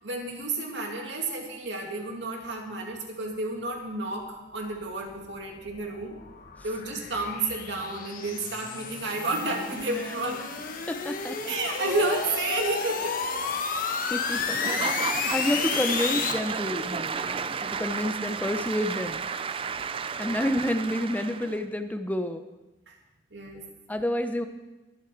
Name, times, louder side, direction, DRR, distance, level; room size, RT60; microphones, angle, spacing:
voice 1, 0.0-6.2 6.6-10.4 11.4-13.4 20.2-20.6 22.9-23.0 23.3-23.6, right 2 dB, 80° right, 1 dB, 2.5 m, -31 dB
sound 1, 5.0-16.3, left 5 dB, 50° left, 1.1 m, -32 dB
voice 2, 10.9-11.5 13.8-14.9 15.3-19.2 20.2-22.4 23.9-24.5, left 1 dB, 10° left, 7 dB, 0.7 m, -29 dB
Applause / Crowd, 14.3-21.6, right 5 dB, 30° right, 0.4 m, -33 dB
22.0 x 8.3 x 4.6 m, 1.0 s
head